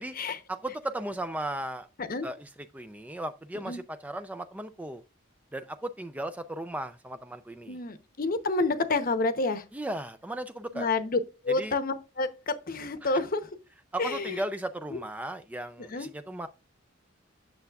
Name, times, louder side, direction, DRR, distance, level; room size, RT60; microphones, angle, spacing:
voice 1, 0.5-1.9 2.2-5.0 5.5-7.8 9.7-10.9 11.6-11.8 13.0-13.2 13.9-16.5, right 1 dB, 5° right, 0.3 m, -36 dB
voice 2, 7.7-9.6 10.7-13.5 14.0-14.4 14.9-15.0 15.9-16.1, left 3 dB, 45° left, 0.8 m, -29 dB
9.1 x 6.8 x 2.3 m
head